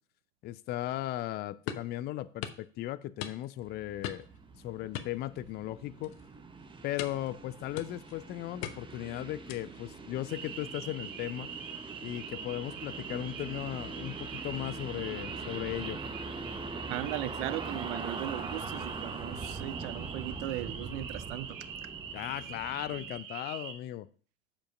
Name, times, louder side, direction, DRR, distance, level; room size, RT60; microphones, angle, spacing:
voice 1, 0.4-4.3 4.6-6.1 6.8-11.5 12.0-16.0 22.1-24.1, left 14 dB, 25° left, 0.4 m, -37 dB
sound 1, 1.7-1.9 2.4-2.6 3.2-3.6 4.0-4.4 4.9-5.7 6.0-6.3 7.0-7.3 7.8-8.2 8.6-9.0 9.5-9.8, left 10 dB, 60° left, 1.0 m, -40 dB
sound 2, 3.6-23.2, right 4 dB, 15° right, 1.0 m, -43 dB
sound 3, 10.3-23.7, right 7 dB, 75° right, 1.2 m, -44 dB
voice 2, 16.9-21.6, right 14 dB, 60° right, 0.6 m, -37 dB
7.2 x 5.4 x 5.1 m
hypercardioid pair, 90°, 39 cm